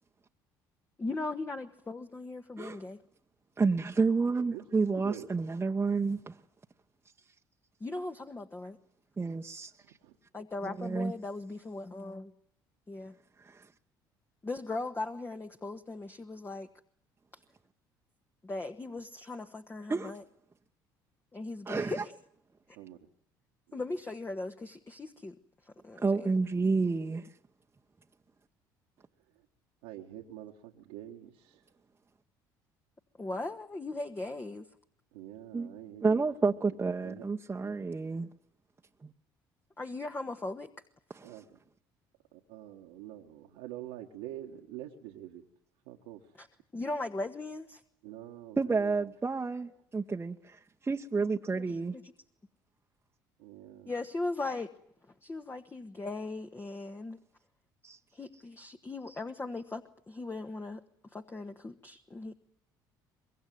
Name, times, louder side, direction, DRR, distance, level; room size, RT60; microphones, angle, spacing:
voice 1, 1.0-3.0 7.8-8.8 10.3-12.3 12.9-13.1 14.4-16.7 18.4-20.2 21.3-22.2 23.7-25.3 25.6-26.3 33.2-34.7 39.8-40.7 46.4-46.5 46.7-47.8 51.5-51.6 51.9-52.1 53.9-54.7 55.2-57.2 58.1-60.8 61.1-62.3, left 2 dB, 25° left, 1.5 m, -38 dB
voice 2, 3.6-6.3 9.2-9.7 10.6-11.1 13.4-13.7 19.9-20.1 21.7-22.0 26.0-27.3 35.5-35.7 36.0-38.3 41.1-41.3 48.6-52.0 57.8-58.0, right 4 dB, 25° right, 1.2 m, -30 dB
voice 3, 4.9-5.3 10.0-10.2 22.7-23.0 23.7-23.8 29.3-29.5 29.8-31.7 35.1-36.3 36.7-37.3 41.2-41.6 42.3-45.5 45.9-46.4 48.0-49.1 53.4-53.9, right 13 dB, 85° right, 1.9 m, -46 dB
24.5 x 22.0 x 9.5 m
supercardioid pair, 70°, 10 cm